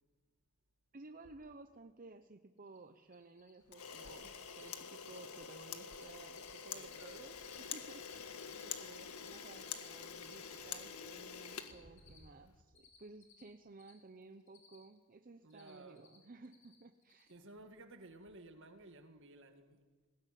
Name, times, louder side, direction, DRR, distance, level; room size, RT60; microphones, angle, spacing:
voice 1, 0.9-17.3, right 3 dB, 40° right, 0.8 m, -56 dB
Cricket, 2.7-2.8 3.0-3.5 3.8-4.1 4.3-4.7 5.0-5.3 5.5-6.0 6.3-7.6 7.8-11.0 11.3-13.9 14.2-15.0 15.3-16.2 16.4-16.8 17.0-17.3, left 8 dB, 55° left, 5.4 m, -63 dB
Camera, 3.7-12.4, left 7 dB, 90° left, 1.7 m, -47 dB
voice 2, 6.7-7.2 11.8-12.2 15.4-16.0 17.3-19.9, right 2 dB, 60° right, 1.9 m, -56 dB
20.0 x 17.5 x 9.3 m
head